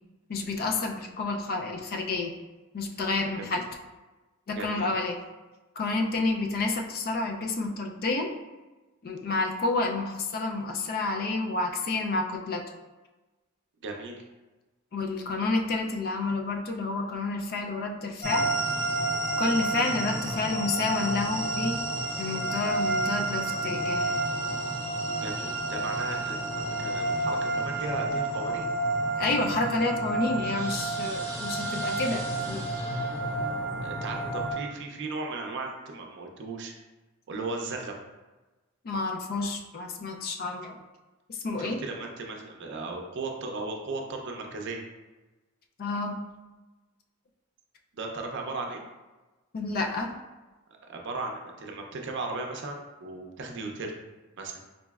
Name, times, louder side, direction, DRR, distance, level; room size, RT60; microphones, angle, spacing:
voice 1, 0.3-2.3 2.7-3.6 4.5-5.2 5.8-8.3 9.0-12.6 14.9-18.5 19.4-21.8 22.2-24.1 29.2-32.6 38.8-40.8 41.3-41.8 45.8-46.2 49.5-50.1, left 3 dB, 45° left, 3 dB, 0.4 m, -29 dB
voice 2, 4.6-4.9 13.8-14.2 25.2-28.7 33.8-36.7 37.3-37.9 41.6-44.8 47.9-48.8 50.9-53.9 54.4-54.6, right 3 dB, 60° right, 2 dB, 0.5 m, -36 dB
sound 1, 18.2-34.5, right 2 dB, 10° left, 0.7 m, -30 dB
4.0 x 3.0 x 2.3 m, 1.2 s
head